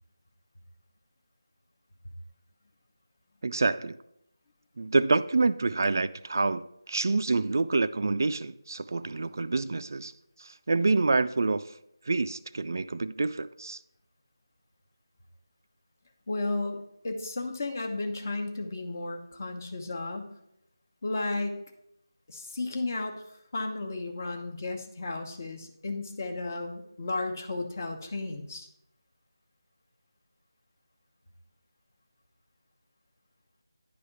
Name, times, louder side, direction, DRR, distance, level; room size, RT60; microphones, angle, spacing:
voice 1, 3.4-4.0 4.8-10.1 10.4-11.7 12.1-13.8, right 3 dB, 50° right, 0.3 m, -27 dB
voice 2, 16.3-20.3 21.0-21.6 22.3-23.2 23.5-28.7, left 2 dB, 40° left, 1.0 m, -33 dB
10.0 x 3.4 x 6.6 m
figure-of-eight pair, 165°, 2 cm